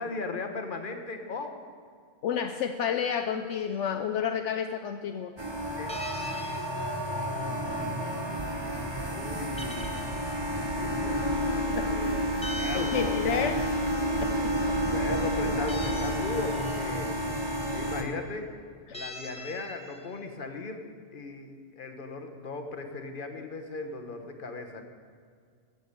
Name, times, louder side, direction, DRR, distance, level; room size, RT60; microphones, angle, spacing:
voice 1, 0.0-1.5 5.8-5.9 9.0-10.2 10.8-13.5 14.9-17.1 17.7-18.5 18.9-24.8, left 3 dB, 45° left, 5 dB, 1.3 m, -38 dB
voice 2, 2.2-5.3 11.7-11.9 12.7-13.6 14.2-14.8 18.9-19.0, left 8 dB, 75° left, 6 dB, 0.9 m, -30 dB
sound 1, 3.5-3.8 5.9-7.1 9.4-10.4 12.4-13.7 15.7-16.9 18.9-20.1, left 1 dB, 5° left, 0.8 m, -42 dB
sound 2, 5.4-18.0, equal, 25° right, 1.2 m, -30 dB
sound 3, 8.4-16.2, right 6 dB, 40° right, 0.9 m, -42 dB
14.5 x 7.3 x 8.6 m, 2.1 s
omnidirectional pair, 1.2 m